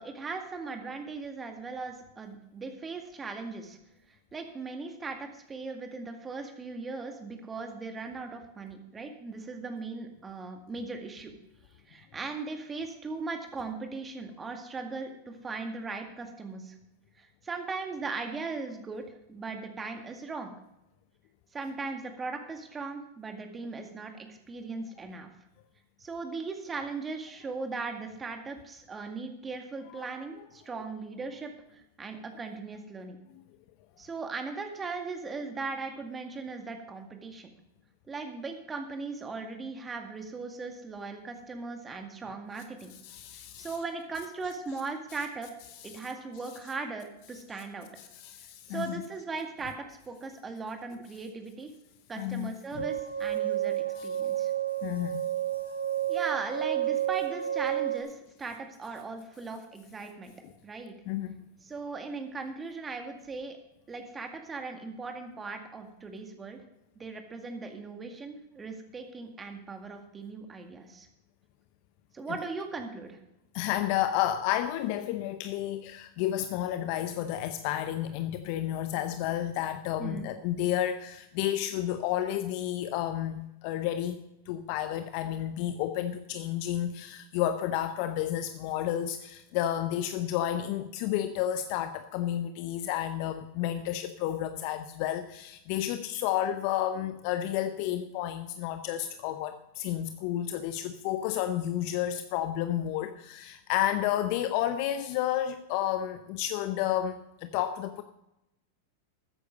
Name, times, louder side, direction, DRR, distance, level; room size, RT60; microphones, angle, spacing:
voice 1, 0.0-3.8 4.3-11.3 11.9-16.8 17.2-19.0 19.3-20.5 21.5-25.3 26.0-33.2 34.0-37.5 38.1-42.9 43.6-45.5 45.8-47.9 48.7-51.7 52.1-54.5 56.1-60.3 60.6-60.9 61.6-63.6 63.9-66.6 67.0-71.1 72.1-73.2 80.0-80.3, right 4 dB, 20° right, 5 dB, 2.0 m, -38 dB
voice 2, 43.0-43.7 48.0-48.9 52.2-52.8 54.0-54.1 54.8-55.3 60.4-60.5 61.1-61.5 73.5-84.2 84.5-108.0, left 12 dB, 55° left, 10 dB, 0.8 m, -31 dB
sound 1, 52.8-58.0, right 11 dB, 90° right, 1.8 m, -30 dB
13.5 x 9.5 x 5.3 m, 0.86 s
hypercardioid pair, 100°, 0 cm